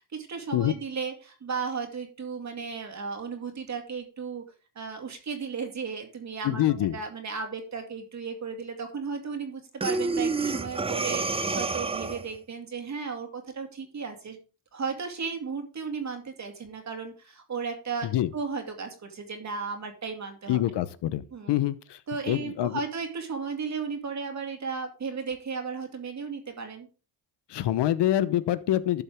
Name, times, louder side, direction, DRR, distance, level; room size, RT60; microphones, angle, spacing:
voice 1, 0.1-4.4 4.8-6.6 6.9-14.4 14.7-20.8 21.3-21.6 22.1-26.9, right 5 dB, 40° right, 4 dB, 2.3 m, -35 dB
voice 2, 6.4-7.0 18.0-18.3 20.5-22.0 22.3-22.8 27.5-29.0, left 13 dB, 70° left, 15 dB, 1.0 m, -26 dB
Breathing, 9.8-12.4, right 3 dB, 15° right, 0.7 m, -28 dB
12.5 x 7.1 x 3.6 m, 0.34 s
cardioid pair, 125°, 43 cm